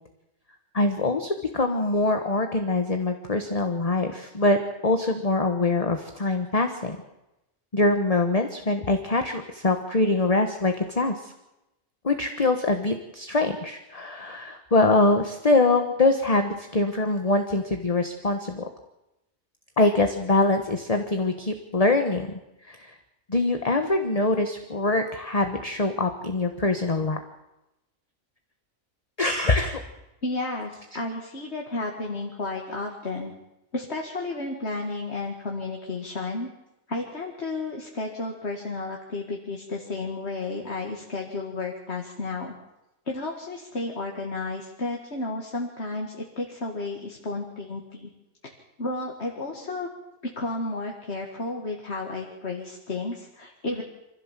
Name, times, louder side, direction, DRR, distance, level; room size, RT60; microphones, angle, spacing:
voice 1, 0.7-4.6 4.8-7.0 7.7-11.3 12.0-18.6 19.8-22.4 22.7-22.9 23.3-27.2 29.2-29.8, left 2 dB, 30° left, 5 dB, 1.3 m, -24 dB
voice 2, 30.2-33.3 33.7-36.5 36.9-42.5 43.1-48.1 48.4-48.5 48.8-49.9 50.4-53.8, left 2 dB, 55° left, 0 dB, 2.4 m, -32 dB
25.0 x 15.5 x 7.5 m, 0.92 s
omnidirectional pair, 1.4 m